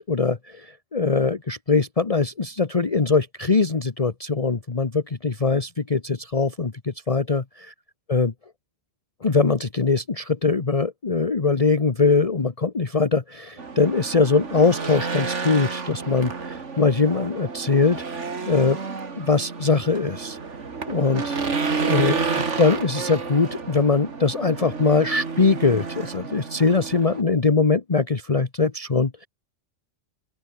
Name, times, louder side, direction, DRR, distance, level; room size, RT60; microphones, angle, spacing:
voice 1, 0.0-7.4 8.1-8.3 9.2-18.8 19.2-20.4 20.9-21.4 21.8-22.2 22.6-29.3, left 4 dB, 30° left, 1.2 m, -22 dB
Race car auto racing / Engine, 13.6-27.2, right 4 dB, 75° right, 2.4 m, -30 dB
open air
omnidirectional pair, 1.2 m